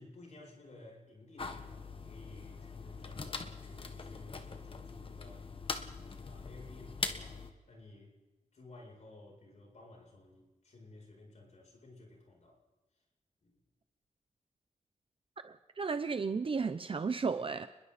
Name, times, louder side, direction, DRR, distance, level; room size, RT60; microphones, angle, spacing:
voice 1, 0.0-5.5 5.9-8.2 8.5-12.6 13.4-13.6, left 2 dB, 60° left, 7.9 m, -55 dB
sound 1, 1.4-7.5, left 4 dB, 45° left, 1.6 m, -42 dB
voice 2, 15.4-17.7, right 5 dB, 45° right, 0.8 m, -34 dB
29.5 x 21.5 x 4.3 m
wide cardioid pair, 140°, 13 cm